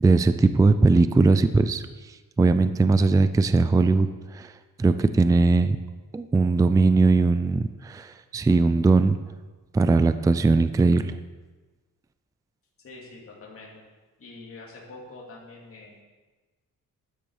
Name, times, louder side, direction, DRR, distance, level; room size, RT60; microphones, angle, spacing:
voice 1, 0.0-1.8 2.4-4.1 4.3-4.5 4.8-5.8 6.1-9.2 9.7-11.2, right 3 dB, 10° right, 11 dB, 0.4 m, -20 dB
voice 2, 12.8-13.8 14.2-16.0, left 3 dB, 40° left, -3 dB, 2.9 m, -45 dB
12.5 x 10.0 x 4.9 m, 1.3 s
wide cardioid pair, 150°, 34 cm